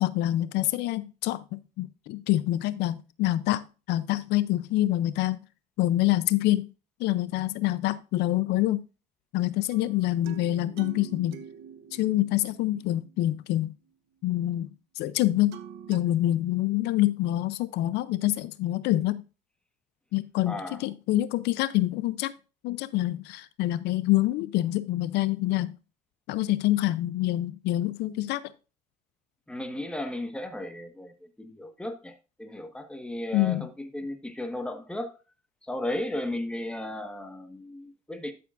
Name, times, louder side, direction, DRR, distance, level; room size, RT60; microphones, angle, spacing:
voice 1, 0.0-5.4 5.8-6.7 7.0-8.8 9.3-11.4 11.9-13.7 14.2-14.7 15.0-15.6 15.9-19.2 20.1-22.3 22.6-25.7 26.3-28.5 33.3-33.7, left 15 dB, 85° left, 0.5 m, -26 dB
sound 1, 9.7-13.7 15.5-16.0, right 8 dB, 90° right, 0.9 m, -46 dB
voice 2, 20.5-20.9 29.5-35.2 35.6-38.3, left 1 dB, 5° left, 1.4 m, -35 dB
12.0 x 7.0 x 2.5 m
cardioid pair, 110°, 17 cm